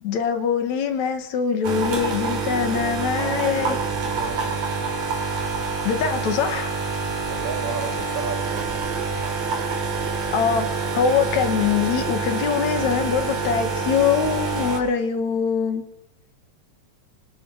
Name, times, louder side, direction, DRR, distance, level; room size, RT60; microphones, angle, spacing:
voice 1, 0.0-3.8 5.8-6.7 10.3-15.8, left 7 dB, 65° left, 2.9 m, -23 dB
sound 1, 1.6-14.8, right 4 dB, 90° right, 5.3 m, -27 dB
voice 2, 2.7-4.6 6.1-6.2 7.3-8.9, right 5 dB, 65° right, 6.7 m, -34 dB
25.5 x 24.0 x 6.4 m
omnidirectional pair, 3.5 m